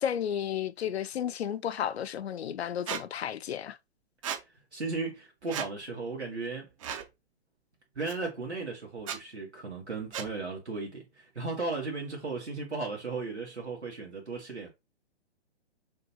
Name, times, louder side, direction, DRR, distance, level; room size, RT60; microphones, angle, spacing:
voice 1, 0.0-3.8, left 9 dB, 70° left, 0.5 m, -32 dB
Squeak, 2.9-3.0 4.2-4.4 5.5-5.7 6.8-7.1 8.1-8.2 9.0-9.2 10.1-10.3, right 8 dB, 30° right, 0.5 m, -35 dB
voice 2, 4.5-6.7 7.9-14.7, right 3 dB, 90° right, 1.6 m, -36 dB
6.4 x 2.3 x 2.8 m
figure-of-eight pair, 125°, 33 cm